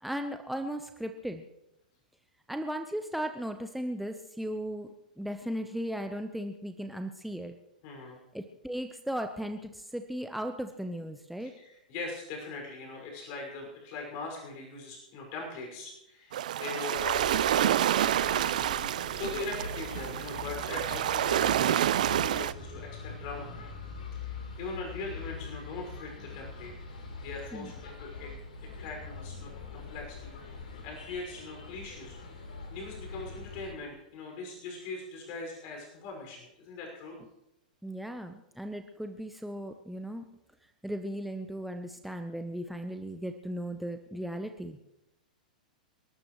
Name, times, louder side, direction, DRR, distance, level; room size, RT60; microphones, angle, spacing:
voice 1, 0.0-1.4 2.5-7.5 8.3-11.5 27.5-27.7 37.8-40.3 40.8-44.8, equal, ahead, 6 dB, 0.9 m, -36 dB
voice 2, 7.8-8.2 11.4-18.7 19.1-23.5 24.1-26.7 27.2-28.3 28.6-30.6 30.8-32.2 32.7-37.2, left 3 dB, 45° left, 1 dB, 5.9 m, -41 dB
sound 1, 16.3-22.5, right 11 dB, 65° right, 0.5 m, -28 dB
sound 2, 16.9-33.7, left 4 dB, 70° left, 3.7 m, -43 dB
29.0 x 12.5 x 3.2 m, 0.88 s
figure-of-eight pair, 105°, 4 cm